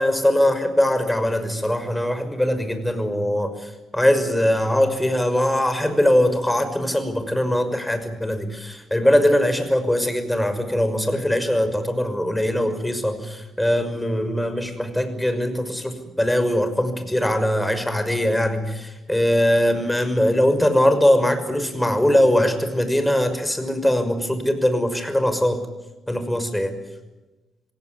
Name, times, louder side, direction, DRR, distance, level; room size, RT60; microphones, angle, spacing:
voice 1, 0.0-3.5 3.9-25.6 26.1-26.8, left 1 dB, 10° left, 9 dB, 5.9 m, -21 dB
27.0 x 17.5 x 9.8 m, 1.1 s
hypercardioid pair, 45°, 0 cm